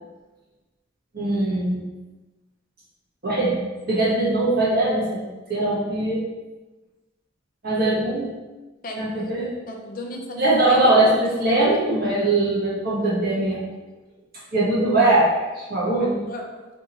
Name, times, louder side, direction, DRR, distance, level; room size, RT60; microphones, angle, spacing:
voice 1, 1.1-1.8 3.2-3.6 3.9-5.2 5.5-6.2 7.6-8.3 9.0-9.5 10.4-13.6 14.5-16.2, right 2 dB, 50° right, -7 dB, 1.5 m, -21 dB
voice 2, 8.8-9.3 9.6-11.6 13.3-13.6 16.3-16.7, left 1 dB, 45° left, 2 dB, 0.6 m, -36 dB
3.5 x 2.8 x 4.3 m, 1.1 s
head